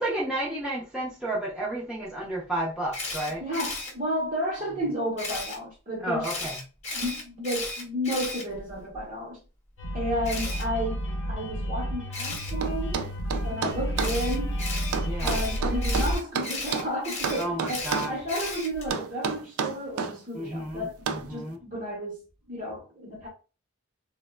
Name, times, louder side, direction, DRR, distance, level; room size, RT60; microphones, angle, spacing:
voice 1, 0.0-3.4 6.0-6.6 15.0-15.4 17.4-18.1 20.3-20.9 21.1-21.6, right 1 dB, 5° right, 0.6 m, -31 dB
Camera, 2.9-3.9 5.2-5.6 6.2-9.0 10.2-10.6 12.1-12.5 14.0-18.9, left 2 dB, 30° left, 0.8 m, -35 dB
voice 2, 3.4-6.3 6.9-9.4 9.9-13.0 13.4-14.6 15.2-22.2 22.5-23.3, equal, 35° right, 0.8 m, -32 dB
sound 1, 9.8-16.2, equal, 60° left, 0.8 m, -30 dB
sound 2, 12.6-14.2 14.9-16.9 17.2-18.2 18.9-20.2 21.1-21.3, right 5 dB, 85° right, 0.4 m, -30 dB
3.4 x 2.1 x 2.2 m
head